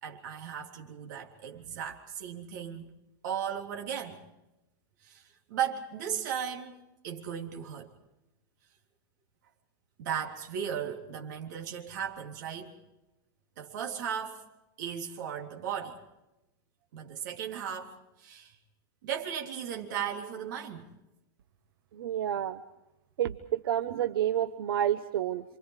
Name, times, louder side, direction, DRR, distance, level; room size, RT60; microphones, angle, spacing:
voice 1, 0.0-2.9 3.2-4.2 5.0-5.2 5.5-6.7 7.0-7.9 10.0-12.8 13.6-14.4 14.8-16.0 16.9-18.5 19.0-20.9, right 8 dB, 55° right, 3.5 m, -36 dB
voice 2, 22.0-22.6 23.2-25.4, right 11 dB, 85° right, 1.1 m, -29 dB
28.0 x 26.5 x 4.9 m
supercardioid pair, 175°, 12 cm